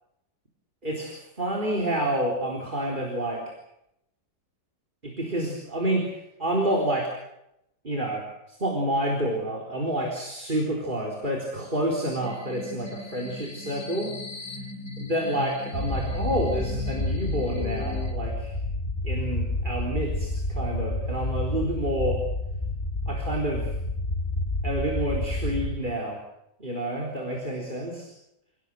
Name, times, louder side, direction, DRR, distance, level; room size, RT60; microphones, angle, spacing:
voice 1, 0.8-3.4 5.0-7.1 7.8-14.2 15.0-18.5 19.0-22.2 23.1-23.7 24.6-26.2 26.6-28.1, right 1 dB, 25° right, 0 dB, 4.2 m, -29 dB
sound 1, 12.2-18.1, left 3 dB, 65° left, 4.8 m, -37 dB
sound 2, 15.7-25.7, left 2 dB, 20° left, 2.9 m, -29 dB
28.5 x 18.0 x 7.8 m, 0.83 s
omnidirectional pair, 2.0 m